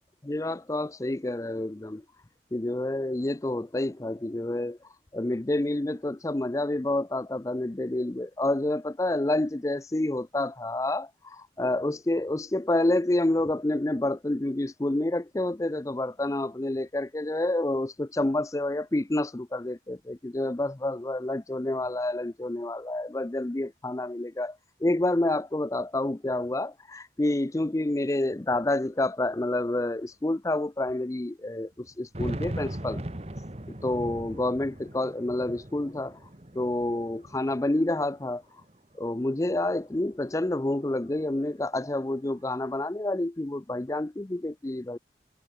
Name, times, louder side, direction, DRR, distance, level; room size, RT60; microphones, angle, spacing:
voice 1, 0.2-2.0 2.5-4.8 5.1-33.0 33.8-36.2 36.5-38.4 39.0-45.0, left 1 dB, 20° left, 0.5 m, -28 dB
sound 1, 28.2-28.3 28.5-28.6 29.5-29.6 30.0-30.1 31.8-38.2 38.6-39.5, right 1 dB, 35° right, 1.6 m, -39 dB
head